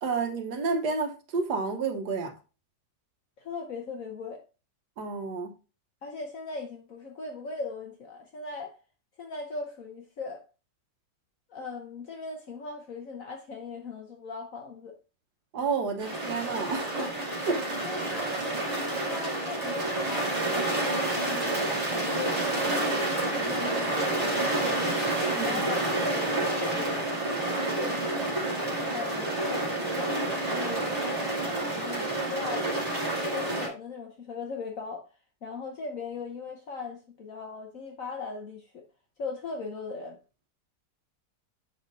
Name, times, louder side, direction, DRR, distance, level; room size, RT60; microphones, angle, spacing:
voice 1, 0.0-2.3 5.0-5.6 15.5-17.2 17.4-17.7 25.3-25.7, right 4 dB, 75° right, 1.6 m, -30 dB
voice 2, 3.4-4.4 6.0-8.8 9.2-10.4 11.5-14.9 17.8-18.3 19.0-25.0 25.4-27.2 27.5-28.0 28.9-30.2 30.5-32.7 33.2-35.1 35.4-38.8 39.2-40.2, left 4 dB, 60° left, 1.3 m, -39 dB
sound 1, 16.0-33.7, right 2 dB, 20° right, 2.9 m, -29 dB
8.2 x 5.8 x 2.6 m
omnidirectional pair, 1.7 m